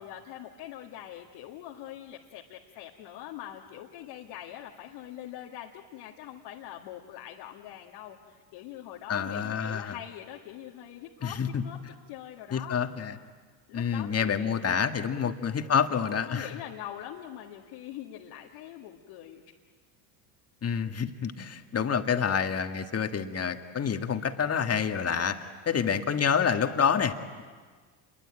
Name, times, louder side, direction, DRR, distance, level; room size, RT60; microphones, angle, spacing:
voice 1, 0.0-11.8 12.1-12.8 13.7-14.6 15.2-15.5 16.2-19.4, left 12 dB, 70° left, -1 dB, 2.2 m, -43 dB
voice 2, 9.1-10.0 11.2-11.6 12.5-13.2 13.7-16.5 20.6-27.4, left 7 dB, 30° left, 7 dB, 1.8 m, -28 dB
28.0 x 23.0 x 8.9 m, 1.5 s
supercardioid pair, 90°, 48 cm